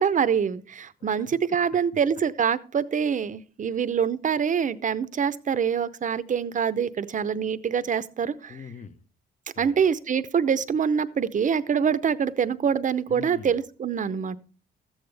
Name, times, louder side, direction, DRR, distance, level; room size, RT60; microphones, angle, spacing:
voice 1, 0.0-8.6 9.6-14.4, right 7 dB, 40° right, 0.7 m, -25 dB
voice 2, 1.0-1.4 3.7-3.8 8.5-9.0 9.6-9.8 13.1-13.6, left 6 dB, 40° left, 0.8 m, -43 dB
13.5 x 8.8 x 3.3 m
cardioid pair, 90°, 20 cm